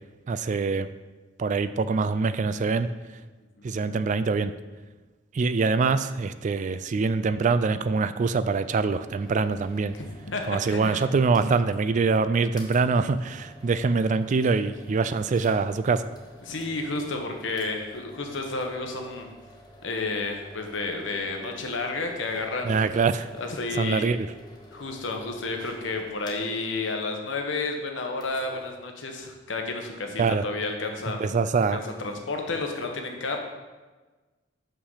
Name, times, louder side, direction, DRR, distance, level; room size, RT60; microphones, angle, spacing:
voice 1, 0.3-0.9 1.4-2.9 3.6-4.5 5.3-9.9 10.5-16.0 22.6-23.3 23.7-24.3 30.2-30.4 31.1-31.8, right 4 dB, 40° right, 12 dB, 0.3 m, -24 dB
sound 1, 9.2-11.8 12.1-12.2 12.6-26.7 28.1-28.7, left 1 dB, 20° left, 1.4 m, -50 dB
voice 2, 9.9-10.4 10.7-11.0 16.4-19.3 19.8-22.7 23.4-24.1 24.7-31.3 31.7-33.4, left 3 dB, 70° left, 3 dB, 1.2 m, -31 dB
6.6 x 5.8 x 5.5 m, 1.3 s
head